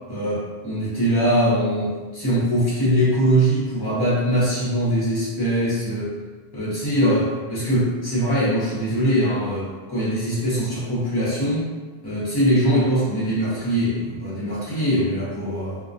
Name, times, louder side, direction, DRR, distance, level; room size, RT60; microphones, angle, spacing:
voice 1, 0.1-6.1 6.5-11.7 12.0-15.8, equal, 25° left, -9 dB, 0.8 m, -22 dB
2.2 x 2.2 x 2.6 m, 1.3 s
omnidirectional pair, 1.1 m